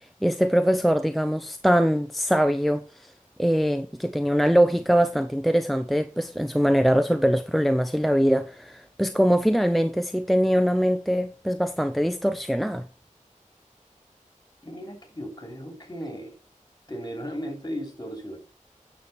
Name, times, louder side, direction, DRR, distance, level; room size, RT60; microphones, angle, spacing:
voice 1, 0.2-3.1 3.4-12.8, equal, ahead, 0.6 m, -22 dB
voice 2, 14.6-16.4 16.9-18.4, equal, 30° left, 3.2 m, -36 dB
9.4 x 6.8 x 4.3 m
wide cardioid pair, 40°, 14 cm